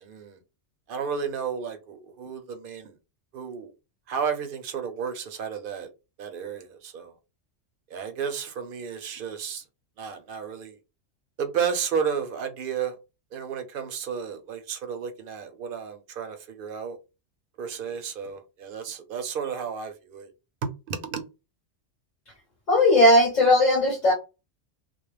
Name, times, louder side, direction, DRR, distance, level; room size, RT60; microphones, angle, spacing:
voice 1, 0.0-0.4 0.9-2.9 3.3-3.7 4.1-5.9 6.2-7.1 7.9-9.6 10.0-10.8 11.4-13.0 13.3-17.0 17.6-20.3 20.6-21.2, right 7 dB, 60° right, 0.6 m, -32 dB
voice 2, 22.7-24.1, left 1 dB, 45° left, 0.8 m, -18 dB
2.3 x 2.0 x 3.1 m
omnidirectional pair, 1.2 m